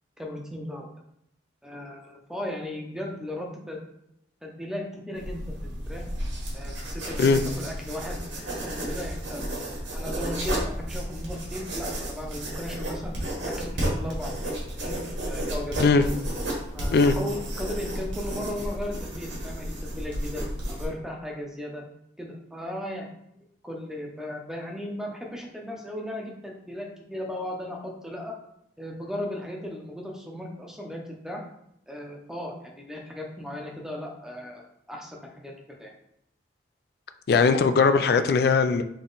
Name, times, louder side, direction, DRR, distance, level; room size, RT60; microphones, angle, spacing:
voice 1, 0.2-0.9 1.6-3.8 4.4-6.0 6.5-7.3 7.6-8.2 8.6-9.4 9.9-13.2 13.4-15.9 16.7-20.4 20.7-21.8 22.2-23.1 23.6-28.3 28.8-31.4 31.9-35.5 35.8-35.9, left 1 dB, 5° right, 0 dB, 0.6 m, -36 dB
sound 1, 5.1-20.9, equal, 80° right, 1.5 m, -32 dB
voice 2, 37.3-38.8, left 4 dB, 55° left, 10 dB, 0.3 m, -19 dB
3.8 x 2.9 x 3.9 m, 0.77 s
head